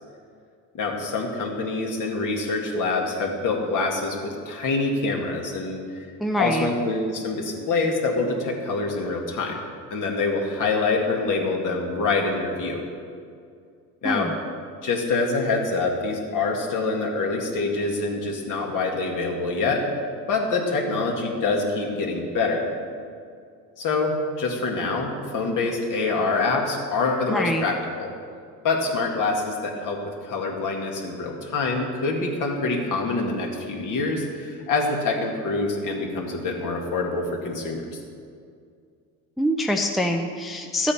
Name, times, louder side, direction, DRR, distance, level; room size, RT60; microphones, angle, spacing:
voice 1, 0.7-5.8 6.4-9.6 9.9-12.8 14.0-14.3 14.8-19.8 20.3-22.7 23.8-28.1 28.6-30.0 30.2-38.0, left 3 dB, 50° left, 0 dB, 2.1 m, -25 dB
voice 2, 6.2-6.7 14.0-14.3 27.3-27.7 39.4-40.9, equal, ahead, 3 dB, 0.6 m, -24 dB
12.5 x 8.5 x 4.3 m, 2.2 s
supercardioid pair, 85°, 40 cm